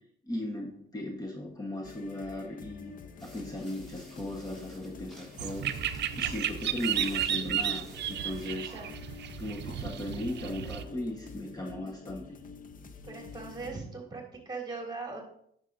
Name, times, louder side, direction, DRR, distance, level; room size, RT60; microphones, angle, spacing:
voice 1, 0.3-8.7 9.4-12.4, left 1 dB, 20° left, 0 dB, 1.2 m, -37 dB
sound 1, 1.8-13.8, left 5 dB, 45° left, 0.7 m, -48 dB
sound 2, 3.2-8.5, equal, ahead, 3.3 m, -55 dB
sound 3, 5.4-10.8, right 10 dB, 60° right, 0.5 m, -33 dB
voice 2, 13.0-15.2, right 3 dB, 20° right, 0 dB, 2.6 m, -40 dB
9.7 x 6.5 x 2.6 m, 0.69 s
cardioid pair, 90°, 20 cm